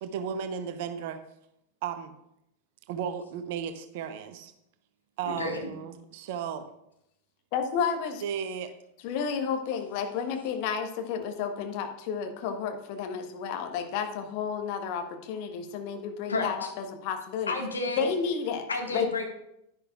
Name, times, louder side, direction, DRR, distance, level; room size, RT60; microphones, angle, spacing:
voice 1, 0.0-1.2 1.8-2.1 2.9-4.5 5.2-6.7 8.2-8.7, right 7 dB, 50° right, 10 dB, 0.8 m, -34 dB
voice 2, 5.3-5.7 16.3-16.7 17.5-18.0 18.7-19.2, left 3 dB, 75° left, 2 dB, 1.7 m, -31 dB
voice 3, 7.5-8.2 9.0-17.5 18.0-18.7 18.9-19.1, left 6 dB, 45° left, 5 dB, 1.2 m, -31 dB
10.5 x 10.5 x 2.4 m, 0.80 s
figure-of-eight pair, 90°, 0 cm